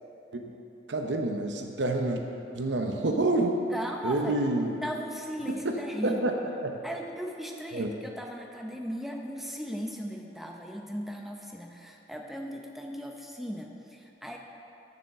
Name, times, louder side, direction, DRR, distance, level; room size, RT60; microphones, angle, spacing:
voice 1, 0.9-2.2 2.5-3.6 4.0-4.7 5.6-5.8 6.0-6.3 6.6-6.8 7.7-7.9, right 2 dB, 80° right, 3 dB, 0.8 m, -27 dB
voice 2, 3.7-4.4 4.8-6.4 6.8-14.4, equal, ahead, 1 dB, 0.7 m, -37 dB
7.2 x 6.9 x 6.5 m, 2.8 s
head